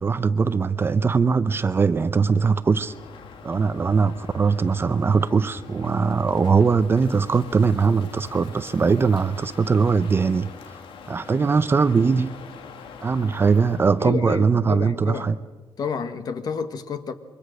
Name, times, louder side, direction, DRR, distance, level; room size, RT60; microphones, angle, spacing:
voice 1, 0.0-2.9 3.4-10.5 11.1-12.4 13.0-15.4, right 5 dB, 25° right, 0.7 m, -21 dB
Crow, 2.6-14.0, left 6 dB, 75° left, 1.8 m, -43 dB
voice 2, 14.0-15.3 15.8-17.1, left 6 dB, 50° left, 1.5 m, -30 dB
27.0 x 23.5 x 6.5 m
cardioid pair, 145°, 9 cm